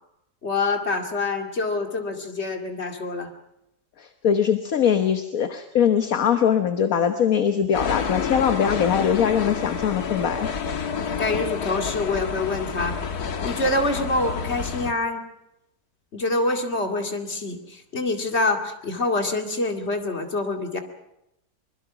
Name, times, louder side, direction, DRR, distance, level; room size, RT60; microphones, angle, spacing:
voice 1, 0.4-3.3 11.2-12.9 13.4-15.2 16.1-20.8, left 2 dB, 45° left, 4 dB, 2.6 m, -26 dB
voice 2, 4.0-10.5, left 8 dB, 65° left, 7 dB, 1.5 m, -22 dB
sound 1, 7.7-14.9, left 6 dB, 85° left, 1.9 m, -29 dB
24.5 x 22.0 x 6.0 m, 0.84 s
omnidirectional pair, 1.6 m